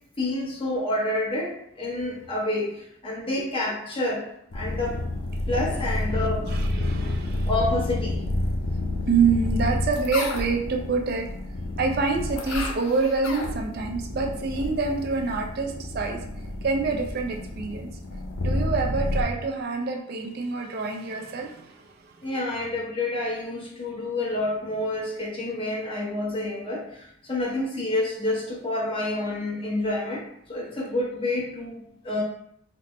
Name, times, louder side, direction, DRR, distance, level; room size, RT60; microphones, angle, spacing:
voice 1, 0.2-5.0 5.5-6.5 7.4-8.2 22.2-32.2, left 2 dB, 25° left, -4 dB, 0.8 m, -28 dB
sound 1, 4.5-19.2, left 1 dB, 80° left, 0.6 m, -29 dB
voice 2, 5.4-5.8 6.1-7.5 9.1-11.3 11.8-16.2 16.6-17.9 18.4-22.4, right 4 dB, 45° right, 2 dB, 0.3 m, -27 dB
4.1 x 2.0 x 3.0 m, 0.73 s
head